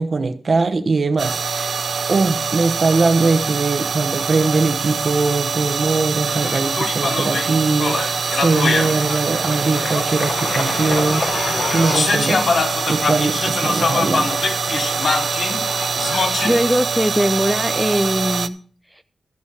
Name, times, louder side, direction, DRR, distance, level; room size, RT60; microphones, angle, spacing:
voice 1, 0.0-1.8 2.1-11.2 11.7-12.5 12.9-14.4, right 3 dB, 45° right, 1.0 m, -21 dB
sound 1, 1.2-18.5, right 5 dB, 65° right, 0.5 m, -24 dB
sound 2, 6.2-16.6, left 4 dB, 60° left, 1.2 m, -24 dB
voice 2, 16.4-18.6 18.9-19.0, equal, ahead, 0.4 m, -20 dB
13.0 x 5.0 x 7.0 m
wide cardioid pair, 130°, 0 cm